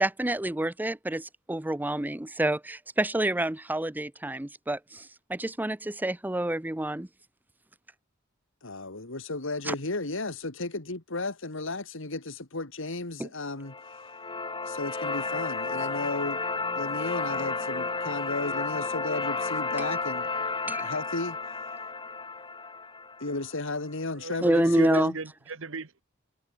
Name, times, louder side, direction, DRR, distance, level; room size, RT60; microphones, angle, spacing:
voice 1, 0.0-7.1 9.7-9.8 13.2-13.3 20.7-20.9 24.4-25.1, right 1 dB, 10° right, 0.6 m, -28 dB
voice 2, 8.6-13.8 14.7-16.4 16.8-21.4 23.2-25.2, left 2 dB, 70° left, 2.4 m, -34 dB
sound 1, 13.6-23.7, left 4 dB, 25° left, 3.1 m, -32 dB
voice 3, 24.2-26.0, right 4 dB, 70° right, 1.4 m, -38 dB
head